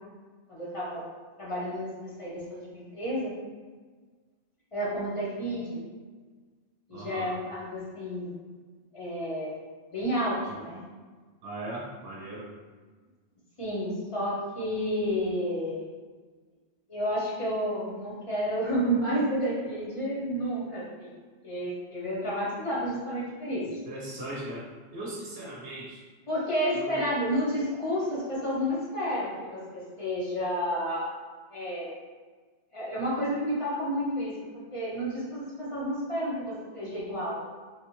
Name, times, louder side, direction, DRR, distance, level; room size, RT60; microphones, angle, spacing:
voice 1, 0.5-1.0 1.4-3.3 4.7-5.8 6.9-8.3 8.9-9.6 9.9-10.8 13.6-15.8 16.9-21.1 21.4-23.6 26.3-31.1 31.5-31.9 32.7-34.3 34.7-37.4, equal, 35° left, -7 dB, 0.7 m, -30 dB
voice 2, 6.9-7.3 10.4-10.6 11.4-12.5 23.9-26.0 26.7-27.0, right 1 dB, 60° right, -5 dB, 0.9 m, -39 dB
3.3 x 2.2 x 3.0 m, 1.4 s
omnidirectional pair, 1.2 m